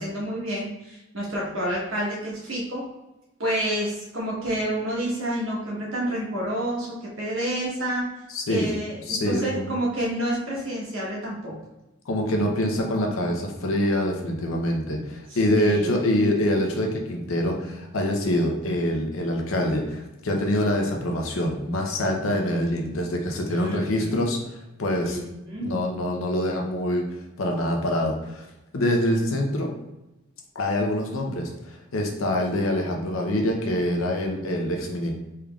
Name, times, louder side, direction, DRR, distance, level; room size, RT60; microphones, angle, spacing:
voice 1, 0.0-2.8 3.4-8.0 8.5-11.5 15.3-15.9 23.5-24.2 25.0-25.7, right 1 dB, 75° right, -4 dB, 1.2 m, -29 dB
voice 2, 8.3-8.7 9.1-9.8 12.1-24.4 24.8-25.2 25.6-27.1 27.4-28.5 28.7-29.7 30.5-35.1, left 1 dB, 90° left, 1 dB, 0.7 m, -25 dB
3.6 x 3.2 x 2.4 m, 0.97 s
head